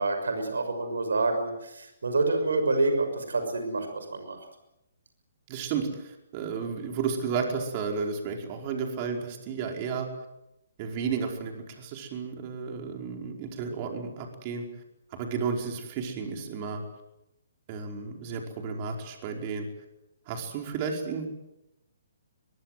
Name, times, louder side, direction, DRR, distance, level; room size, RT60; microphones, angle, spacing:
voice 1, 0.0-4.4, right 2 dB, 75° right, 7 dB, 6.1 m, -27 dB
voice 2, 5.5-10.1 10.8-14.7 15.1-16.8 17.7-19.7 20.3-21.3, right 5 dB, 35° right, 2 dB, 4.9 m, -32 dB
23.0 x 22.5 x 8.0 m, 0.88 s
figure-of-eight pair, 135°, 0 cm